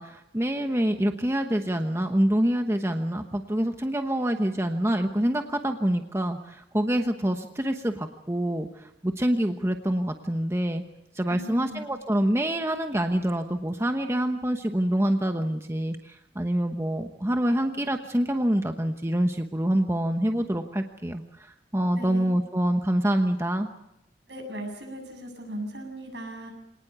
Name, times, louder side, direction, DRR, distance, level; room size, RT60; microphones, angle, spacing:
voice 1, 0.0-10.8 11.1-23.7, right 1 dB, 15° right, 5 dB, 1.0 m, -26 dB
voice 2, 11.3-11.8 21.9-22.3 24.3-26.5, equal, 75° right, 3 dB, 7.5 m, -38 dB
25.5 x 19.0 x 8.1 m, 0.85 s
head